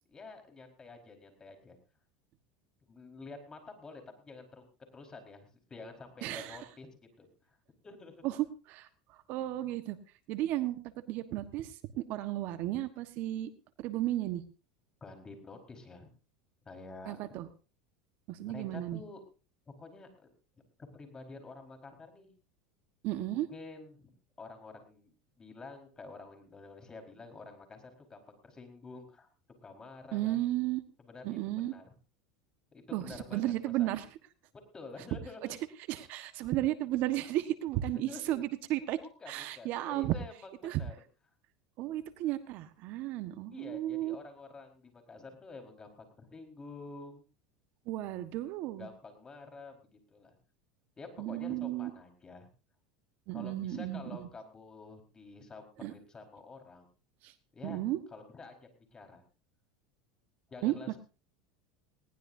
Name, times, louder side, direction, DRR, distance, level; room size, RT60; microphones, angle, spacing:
voice 1, 0.1-1.8 2.9-4.6 4.9-6.9 7.2-7.6 7.8-8.2 15.0-16.1 16.6-17.2 18.4-19.2 19.7-20.3 20.8-22.3 23.3-24.1 24.4-29.3 29.6-30.4 31.0-31.8 32.7-33.9 34.5-35.5 37.9-38.2 39.0-40.9 43.5-47.2 48.8-50.4 51.0-52.5 53.3-56.9 57.5-58.6 58.9-59.2 60.5-61.0, left 3 dB, 20° left, 4 dB, 4.8 m, -49 dB
voice 2, 6.2-6.6 8.2-10.0 10.3-10.8 11.1-13.5 13.8-14.4 17.0-17.5 18.3-19.0 23.0-23.5 30.1-30.8 31.2-31.7 32.9-34.0 35.9-39.0 39.3-40.1 40.6-40.8 41.8-44.1 47.9-48.9 51.2-51.9 53.3-54.3 55.8-55.9 57.2-57.3 57.6-58.0 60.6-60.8, right 14 dB, 55° right, 11 dB, 1.4 m, -34 dB
20.5 x 18.5 x 2.8 m, 0.33 s
supercardioid pair, 105°, 3 cm